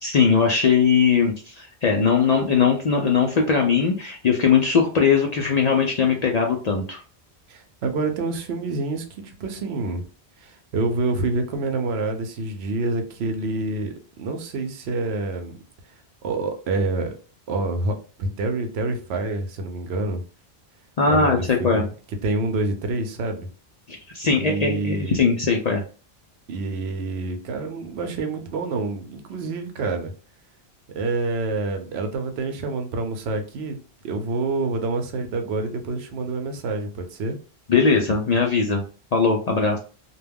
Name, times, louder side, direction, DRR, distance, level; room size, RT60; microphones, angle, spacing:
voice 1, 0.0-7.0 21.0-21.8 23.9-25.8 37.7-38.8 39.1-39.8, left 5 dB, 55° left, 1 dB, 0.4 m, -20 dB
voice 2, 7.5-10.0 10.4-13.9 14.2-15.5 16.2-17.1 17.5-20.2 21.1-21.9 22.2-23.5 24.4-25.2 26.5-30.1 30.9-33.8 34.0-37.4, right 3 dB, 75° right, 6 dB, 0.8 m, -27 dB
2.2 x 2.2 x 3.4 m, 0.38 s
omnidirectional pair, 1.1 m